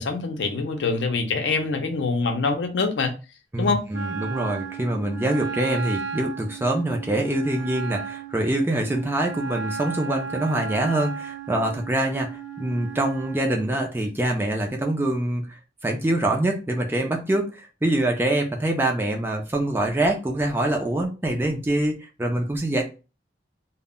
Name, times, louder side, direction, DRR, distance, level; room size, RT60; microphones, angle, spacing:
voice 1, 0.0-3.1 3.6-3.8, left 4 dB, 75° left, 0.5 m, -24 dB
voice 2, 3.5-15.5 15.8-22.8, right 1 dB, 10° right, 0.4 m, -25 dB
Wind instrument woodwind instrument, 3.9-13.5, right 6 dB, 75° right, 0.4 m, -35 dB
2.1 x 2.1 x 3.5 m
head